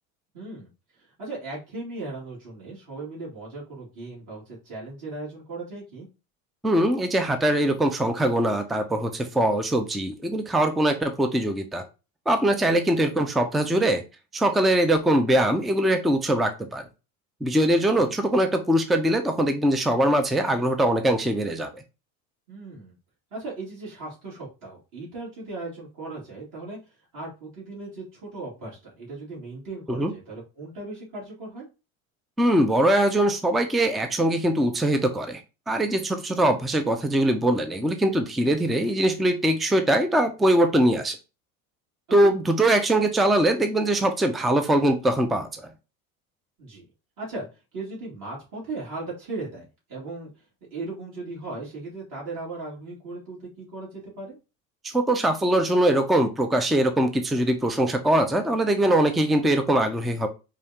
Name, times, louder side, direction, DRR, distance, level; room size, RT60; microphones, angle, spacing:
voice 1, 0.3-0.7 1.0-6.1 17.9-18.1 22.5-23.0 23.3-26.8 27.1-31.7 42.2-42.3 46.6-46.9 47.2-47.5 47.7-50.3 50.7-54.4, right 2 dB, 50° right, -5 dB, 2.3 m, -37 dB
voice 2, 6.6-11.8 12.3-14.0 14.3-16.8 17.4-21.7 29.9-30.1 32.4-35.4 35.7-41.2 42.1-45.7 54.8-60.3, right 1 dB, ahead, 7 dB, 0.4 m, -22 dB
4.9 x 2.4 x 2.8 m, 0.29 s
hypercardioid pair, 90°, 43 cm